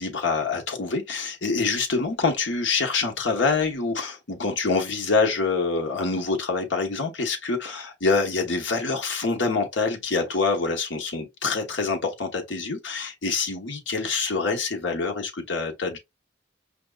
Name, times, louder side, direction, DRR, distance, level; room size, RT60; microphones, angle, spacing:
voice 1, 0.0-16.0, left 4 dB, 75° left, 1.1 m, -26 dB
5.1 x 2.9 x 2.3 m
head